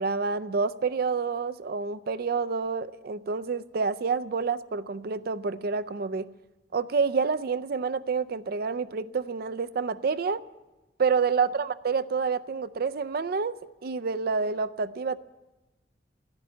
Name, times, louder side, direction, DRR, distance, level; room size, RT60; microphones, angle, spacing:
voice 1, 0.0-6.3 6.7-10.4 11.0-13.6 13.8-15.2, right 5 dB, 55° right, 0.5 m, -28 dB
14.0 x 10.5 x 9.2 m
head